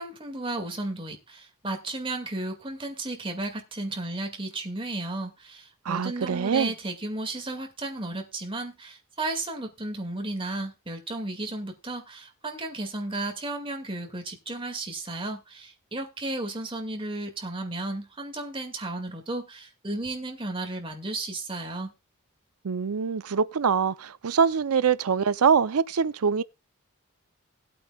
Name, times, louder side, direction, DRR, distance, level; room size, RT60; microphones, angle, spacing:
voice 1, 0.0-21.9, right 2 dB, 25° right, 2.1 m, -34 dB
voice 2, 5.9-6.7 22.6-26.4, right 6 dB, 80° right, 0.5 m, -24 dB
18.5 x 8.5 x 2.3 m
head